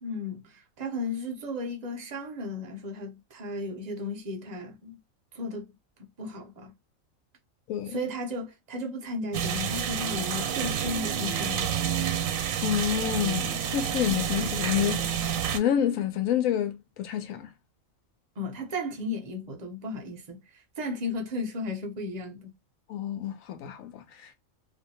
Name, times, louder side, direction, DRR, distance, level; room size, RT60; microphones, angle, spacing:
voice 1, 0.0-5.0 5.3-5.7 6.0-6.7 7.9-11.7 18.4-22.5, left 2 dB, 45° right, 0.5 m, -35 dB
voice 2, 7.7-8.0 12.6-15.1 15.5-17.5 22.9-24.4, left 10 dB, 85° left, 1.0 m, -28 dB
sound 1, 9.3-15.6, right 9 dB, 85° right, 1.0 m, -29 dB
2.6 x 2.2 x 2.7 m
omnidirectional pair, 1.4 m